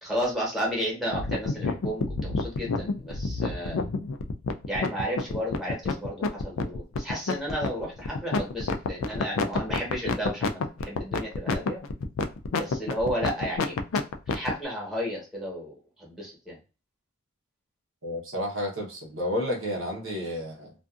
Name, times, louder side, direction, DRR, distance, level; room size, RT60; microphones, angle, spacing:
voice 1, 0.0-3.8 4.7-11.8 12.5-13.7 14.3-16.6, equal, ahead, -4 dB, 1.1 m, -33 dB
sound 1, 1.1-14.5, left 4 dB, 70° left, 0.3 m, -28 dB
voice 2, 18.0-20.7, left 1 dB, 70° right, -2 dB, 0.9 m, -31 dB
2.6 x 2.4 x 2.3 m, 0.32 s
head